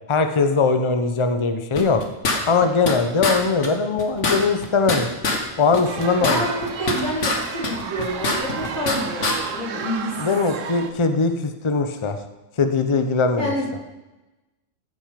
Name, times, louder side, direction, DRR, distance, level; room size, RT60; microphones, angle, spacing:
voice 1, 0.1-2.0 2.5-5.1 5.6-6.4 10.2-12.2 12.6-13.5, left 4 dB, 25° left, 7 dB, 0.8 m, -20 dB
sound 1, 1.8-3.0 3.2-3.4 3.6-3.7 4.0-5.4 5.7-7.4 7.6-9.0 9.2-9.4, left 3 dB, 60° left, 1.8 m, -24 dB
sound 2, 5.8-10.9, right 6 dB, 65° right, 1.2 m, -33 dB
voice 2, 6.2-10.4 13.4-13.7, equal, 75° left, -5 dB, 4.3 m, -27 dB
15.0 x 8.6 x 5.2 m, 1.1 s
omnidirectional pair, 1.5 m